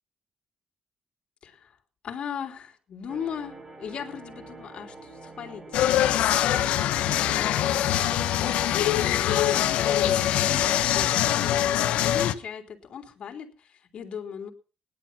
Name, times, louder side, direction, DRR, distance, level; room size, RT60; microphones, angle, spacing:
voice 1, 1.4-1.8 2.0-5.8 6.1-10.2 10.4-14.5, left 7 dB, 60° left, 4 dB, 3.3 m, -39 dB
sound 1, 3.1-11.5, right 2 dB, 35° right, 4.0 m, -45 dB
sound 2, 5.7-12.3, left 12 dB, 85° left, 1.1 m, -23 dB
17.5 x 11.0 x 6.0 m, 0.37 s
cardioid pair, 80°, 2 cm